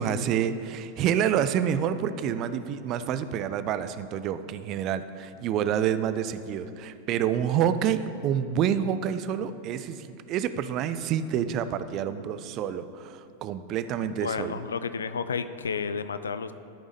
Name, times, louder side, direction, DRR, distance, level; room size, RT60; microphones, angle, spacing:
voice 1, 0.0-14.6, right 9 dB, 35° right, 12 dB, 0.3 m, -28 dB
voice 2, 14.2-16.5, left 5 dB, 70° left, 12 dB, 0.3 m, -31 dB
13.0 x 5.2 x 3.4 m, 2.6 s
figure-of-eight pair, 90°, 0 cm